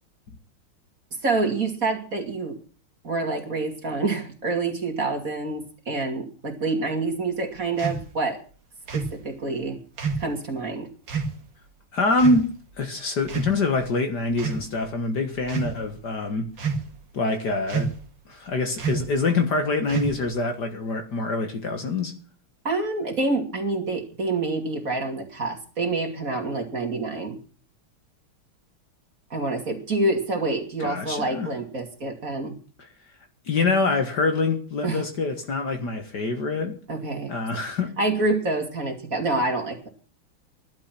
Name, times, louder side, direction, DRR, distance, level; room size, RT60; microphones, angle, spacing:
voice 1, 1.2-2.6 3.0-8.4 8.9-9.8 10.2-10.9 22.6-27.4 29.3-32.6 34.8-35.1 36.9-37.3 38.0-39.9, right 2 dB, 40° right, 3.0 m, -27 dB
sound 1, 7.8-8.0 8.9-9.2 10.0-10.3 11.1-11.3 12.2-12.5 13.2-13.8 14.3-14.7 15.4-15.7 16.6-17.0 17.7-18.1 18.8-19.1 19.9-20.4, right 5 dB, 55° right, 2.5 m, -28 dB
voice 2, 11.9-16.5 17.1-17.9 18.3-22.1 30.8-31.5 33.5-36.8 37.3-37.9, left 3 dB, 50° left, 2.0 m, -25 dB
15.0 x 12.0 x 6.0 m
omnidirectional pair, 2.4 m